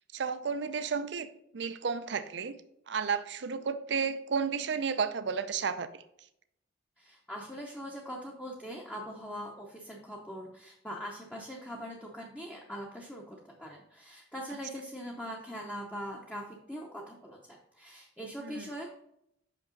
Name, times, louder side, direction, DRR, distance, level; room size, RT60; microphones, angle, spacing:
voice 1, 0.1-1.3 1.5-2.6 2.9-6.0 18.4-18.7, right 6 dB, 65° right, 12 dB, 0.5 m, -32 dB
voice 2, 7.0-18.9, equal, 5° left, -3 dB, 0.7 m, -42 dB
5.9 x 5.3 x 3.9 m, 0.77 s
head